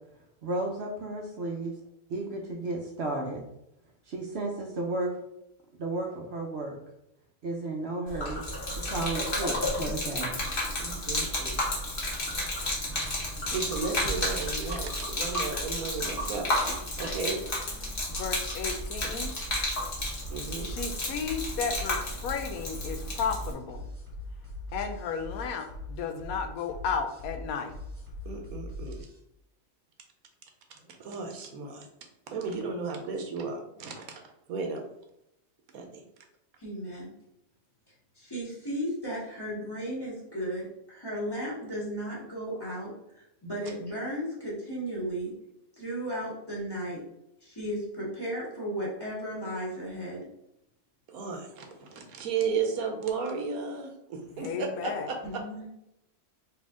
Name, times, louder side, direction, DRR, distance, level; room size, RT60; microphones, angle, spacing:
voice 1, 0.4-1.8 2.1-3.4 4.1-5.2 5.8-6.8 7.4-8.4 8.9-10.4, right 2 dB, 60° right, 1 dB, 0.8 m, -33 dB
Gurgling / Liquid, 8.1-23.5, left 1 dB, 45° left, 1.2 m, -32 dB
voice 2, 10.8-11.6 12.6-12.7 13.5-16.5 17.0-17.4 20.3-20.7 28.2-29.1 30.8-31.9 32.3-34.9 35.7-36.0 51.1-55.4, right 5 dB, 90° right, 4 dB, 1.2 m, -34 dB
voice 3, 18.1-19.3 20.6-23.8 24.7-27.7 54.3-55.1, left 6 dB, 85° left, 6 dB, 1.1 m, -33 dB
sound 1, 21.2-29.2, left 2 dB, 25° right, 1.4 m, -41 dB
voice 4, 36.6-37.1 38.1-45.3 45.8-47.0 47.4-50.3 55.2-55.7, equal, 15° left, -7 dB, 1.6 m, -35 dB
4.2 x 2.7 x 3.6 m, 0.82 s
omnidirectional pair, 1.5 m